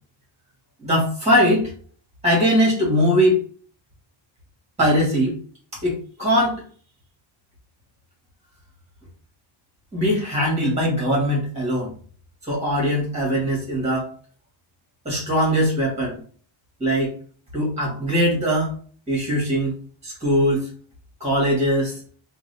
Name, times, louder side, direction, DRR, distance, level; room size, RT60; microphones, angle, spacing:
voice 1, 0.8-1.7 2.2-3.4 4.8-5.4 5.8-6.6 9.9-11.9 12.4-14.1 15.1-16.2 16.8-17.1 17.5-18.7 19.1-19.8 20.0-20.7 21.2-22.0, equal, 15° right, -3 dB, 1.7 m, -21 dB
3.7 x 2.5 x 3.4 m, 0.44 s
wide cardioid pair, 140°, 48 cm